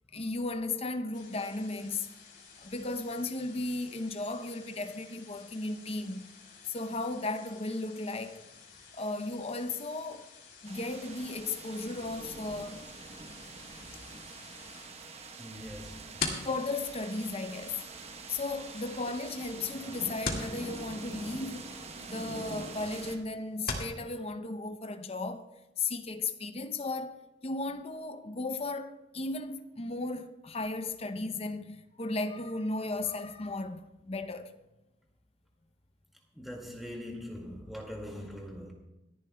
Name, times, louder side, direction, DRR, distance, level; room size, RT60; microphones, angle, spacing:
voice 1, 0.1-2.1 2.6-6.3 6.7-8.4 8.9-10.3 10.6-12.9 14.1-14.2 16.4-17.8 18.3-21.7 22.1-25.5 25.8-27.2 27.4-34.6, left 3 dB, 30° left, 0.7 m, -35 dB
sound 1, 1.1-14.9, left 5 dB, 75° left, 3.3 m, -54 dB
sound 2, 10.6-23.2, right 3 dB, 35° right, 1.0 m, -45 dB
voice 2, 15.4-16.1 36.3-38.7, equal, ahead, 2.1 m, -42 dB
sound 3, 15.6-24.0, left 3 dB, 50° left, 2.0 m, -41 dB
28.0 x 10.5 x 2.3 m
head